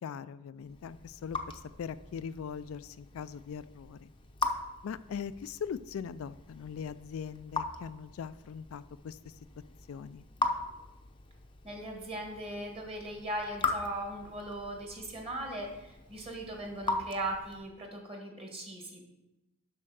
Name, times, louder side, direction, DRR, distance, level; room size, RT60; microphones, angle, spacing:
voice 1, 0.0-4.1 4.8-9.4 9.9-10.2, left 7 dB, 65° left, 14 dB, 0.3 m, -41 dB
Raindrop / Drip, 0.6-17.8, left 3 dB, 20° left, 0.6 m, -40 dB
voice 2, 11.6-19.0, right 1 dB, 25° right, 1 dB, 1.6 m, -39 dB
7.5 x 5.6 x 6.3 m, 0.97 s
head